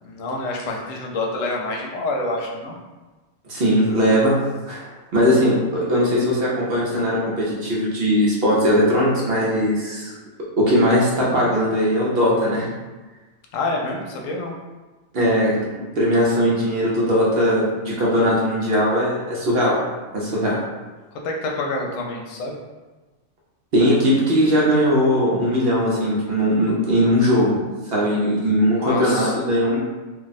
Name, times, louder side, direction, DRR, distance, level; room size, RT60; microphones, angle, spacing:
voice 1, 0.0-2.8 13.5-14.5 21.2-22.6 28.8-29.3, left 2 dB, 80° left, 0 dB, 1.0 m, -27 dB
voice 2, 3.5-4.4 4.7-10.1 10.6-12.7 15.1-15.7 16.0-19.8 20.1-20.6 23.7-29.8, equal, 55° right, -5 dB, 0.8 m, -19 dB
2.6 x 2.2 x 4.0 m, 1.2 s
omnidirectional pair, 1.4 m